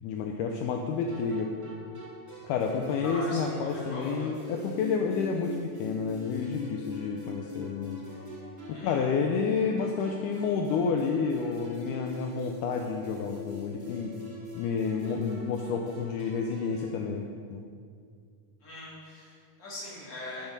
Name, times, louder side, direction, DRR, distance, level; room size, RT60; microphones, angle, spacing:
voice 1, 0.0-1.5 2.4-8.0 8.7-14.2 14.6-17.6, left 5 dB, 80° left, 2 dB, 1.9 m, -30 dB
sound 1, 1.1-17.0, left 2 dB, 20° right, 0.4 m, -43 dB
voice 2, 3.0-4.3 8.7-9.0 18.6-20.5, left 1 dB, 30° left, -6 dB, 2.3 m, -40 dB
10.5 x 5.6 x 5.3 m, 2.1 s
omnidirectional pair, 4.0 m